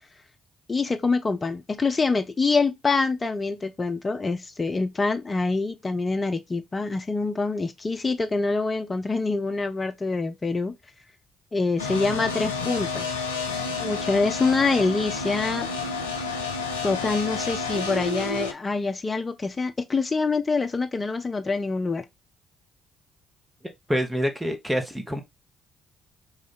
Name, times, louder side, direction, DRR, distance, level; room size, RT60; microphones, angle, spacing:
voice 1, 0.7-10.7 11.5-13.0 13.8-15.7 16.8-22.0, left 3 dB, 30° left, 0.7 m, -25 dB
sound 1, 11.8-18.5, left 4 dB, 85° left, 0.4 m, -30 dB
voice 2, 23.9-25.2, equal, 10° right, 1.1 m, -26 dB
3.2 x 2.5 x 4.2 m
figure-of-eight pair, 45°, 0 cm